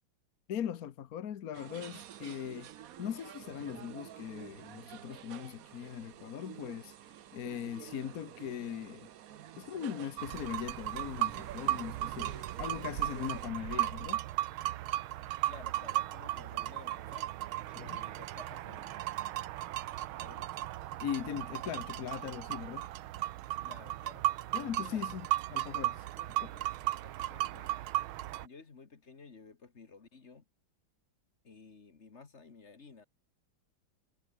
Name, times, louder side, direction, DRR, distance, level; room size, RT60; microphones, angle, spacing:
voice 1, 0.5-2.7 3.0-9.1 9.6-14.2 17.7-18.0 21.0-22.9 24.5-26.0 26.4-26.5, left 9 dB, 55° left, 1.3 m, -40 dB
sound 1, 1.5-13.5, right 11 dB, 60° right, 1.0 m, -50 dB
sound 2, 10.2-28.5, right 15 dB, 90° right, 1.6 m, -36 dB
voice 2, 15.5-17.3 17.9-19.1 20.2-20.6 23.6-24.3 24.8-25.0 26.2-27.8 28.4-30.5 31.4-33.1, left 4 dB, 35° left, 1.8 m, -54 dB
omnidirectional pair, 2.2 m